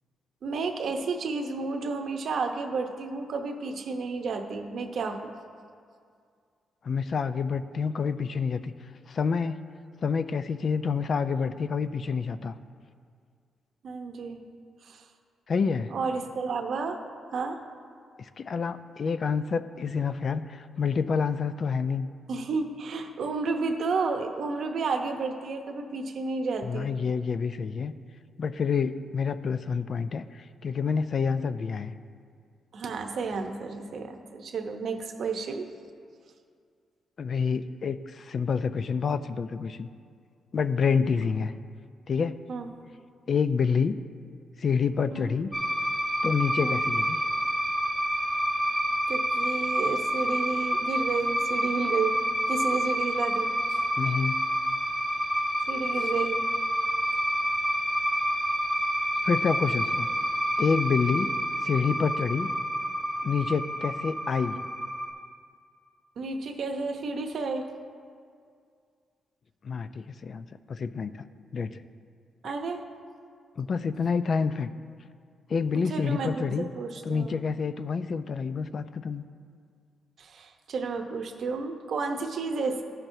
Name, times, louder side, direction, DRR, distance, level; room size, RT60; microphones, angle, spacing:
voice 1, 0.4-5.3 13.8-14.4 14.8-15.0 15.9-17.0 17.3-17.6 22.3-26.9 32.7-35.7 42.5-42.7 45.1-45.3 46.6-46.9 49.1-52.2 52.5-53.8 55.7-56.4 66.2-67.7 72.4-72.8 75.7-77.4 80.2-82.8, right 4 dB, 60° right, 5 dB, 0.8 m, -31 dB
voice 2, 6.8-8.7 9.1-9.6 10.0-12.6 15.5-15.9 18.2-22.1 26.6-27.9 28.4-31.9 37.2-39.9 40.5-41.5 42.1-42.4 43.3-44.0 44.6-45.5 46.2-47.2 54.0-54.4 59.2-60.1 60.6-61.3 61.6-62.5 63.2-64.6 69.6-71.2 71.5-71.8 73.6-74.7 75.5-76.7 77.1-79.2, left 5 dB, 45° left, 12 dB, 0.3 m, -28 dB
sound 1, 45.5-65.1, equal, ahead, 1.2 m, -28 dB
15.0 x 5.8 x 2.7 m, 2.2 s
cardioid pair, 120°, 0 cm